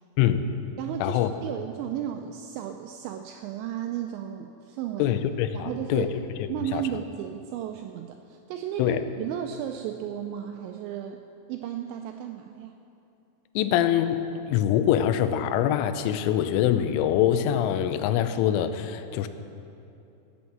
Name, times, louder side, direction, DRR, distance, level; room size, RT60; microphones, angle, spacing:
voice 1, 0.2-0.5 1.0-1.3 5.0-6.1 6.4-6.8 8.8-9.0 13.6-19.3, left 10 dB, 85° left, 9 dB, 3.0 m, -24 dB
voice 2, 0.8-5.2 5.5-6.1 6.5-12.8, right 10 dB, 90° right, 5 dB, 2.5 m, -34 dB
16.5 x 6.3 x 7.3 m, 2.8 s
omnidirectional pair, 5.7 m